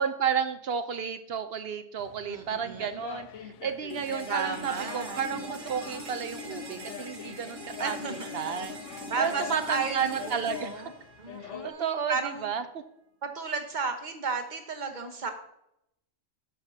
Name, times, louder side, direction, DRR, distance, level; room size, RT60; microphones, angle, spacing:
voice 1, 0.0-10.8 11.4-12.8, right 7 dB, 60° right, 10 dB, 0.7 m, -32 dB
sound 1, 2.0-11.7, left 9 dB, 75° left, 0.9 m, -44 dB
voice 2, 2.3-3.0 4.3-5.2 7.8-8.3 9.1-10.9 11.2-12.5 13.2-15.3, right 4 dB, 40° right, 5 dB, 1.1 m, -33 dB
sound 2, 3.9-11.9, left 1 dB, 80° right, 1.6 m, -42 dB
9.8 x 7.0 x 2.7 m, 0.78 s
omnidirectional pair, 1.3 m